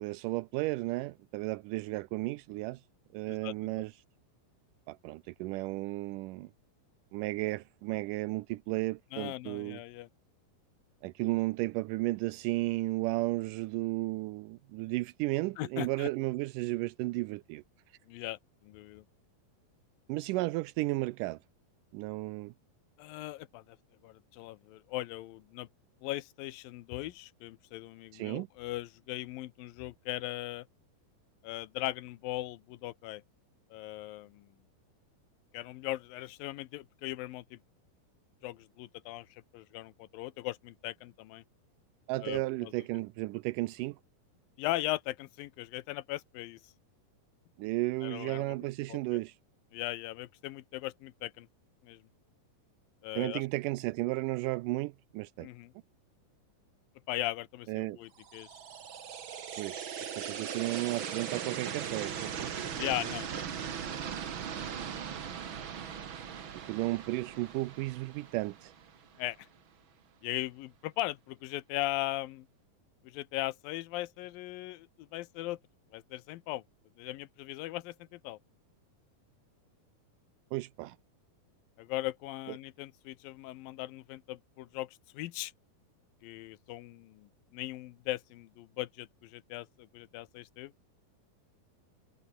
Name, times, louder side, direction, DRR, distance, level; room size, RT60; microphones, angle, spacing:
voice 1, 0.0-2.8 3.1-3.9 4.9-6.5 7.1-9.8 11.0-17.6 20.1-21.4 21.9-22.5 28.1-28.5 42.1-44.0 47.6-49.4 53.2-55.5 57.7-58.0 59.6-59.8 60.1-62.5 66.5-68.7 80.5-81.0, right 20 dB, 80° right, 1.9 m, -34 dB
voice 2, 3.3-3.8 9.1-10.1 15.6-16.1 18.1-19.0 23.0-23.8 24.0-25.7 26.0-30.7 31.4-33.2 33.7-34.5 35.5-37.6 38.4-41.4 42.2-42.7 44.6-46.6 48.0-48.6 48.9-49.0 49.7-51.5 51.8-52.0 53.0-53.4 55.4-55.7 57.1-58.5 62.7-63.7 64.0-64.1 64.5-64.6 69.2-69.5 70.2-72.5 73.0-75.6 75.9-76.6 77.0-78.4 81.8-85.5 86.2-90.7, left 17 dB, 75° left, 2.5 m, -39 dB
sound 1, 58.2-69.2, right 8 dB, 45° right, 1.8 m, -39 dB
omnidirectional pair, 4.2 m